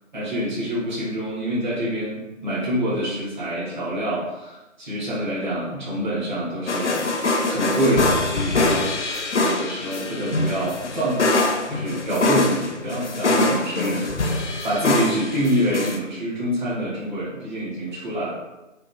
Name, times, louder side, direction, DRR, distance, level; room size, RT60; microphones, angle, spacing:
voice 1, 0.1-7.1 7.4-11.2 11.7-14.3 14.6-18.3, equal, 35° right, -10 dB, 1.4 m, -26 dB
sound 1, 6.7-16.0, left 2 dB, 65° left, 0.5 m, -23 dB
3.4 x 2.2 x 2.5 m, 1.0 s
figure-of-eight pair, 170°, 38 cm